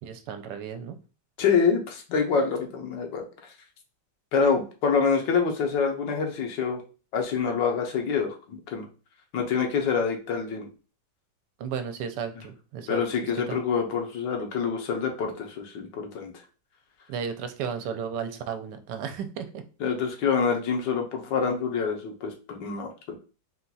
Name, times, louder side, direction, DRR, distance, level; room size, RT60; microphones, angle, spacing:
voice 1, 0.0-1.0 11.6-13.0 13.5-13.6 17.1-19.6, right 7 dB, 80° right, 8 dB, 1.2 m, -34 dB
voice 2, 1.4-3.2 4.3-6.8 7.1-8.9 9.3-10.7 12.9-16.3 19.8-23.2, left 5 dB, 85° left, 3 dB, 1.5 m, -26 dB
4.3 x 2.3 x 3.9 m, 0.35 s
omnidirectional pair, 1.9 m